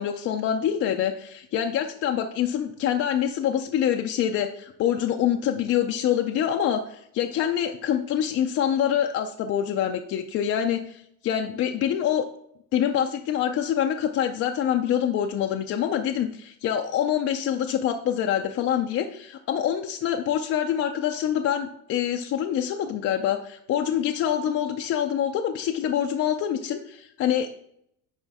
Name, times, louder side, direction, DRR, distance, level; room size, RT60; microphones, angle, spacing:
voice 1, 0.0-12.3 12.7-27.5, left 9 dB, 35° left, 4 dB, 0.4 m, -25 dB
9.7 x 4.9 x 3.5 m, 0.73 s
cardioid pair, 150°, 43 cm